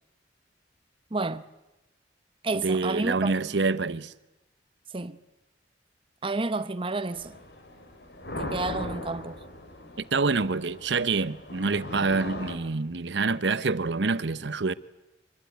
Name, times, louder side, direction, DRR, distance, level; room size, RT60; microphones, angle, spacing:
voice 1, 1.1-1.4 2.4-3.4 4.9-5.2 6.2-7.4 8.4-9.4, right 3 dB, 30° right, 0.8 m, -30 dB
voice 2, 2.6-4.1 10.0-14.7, right 4 dB, 85° right, 0.9 m, -26 dB
sound 1, 7.1-12.6, left 1 dB, 65° left, 3.4 m, -39 dB
25.0 x 21.0 x 9.4 m
head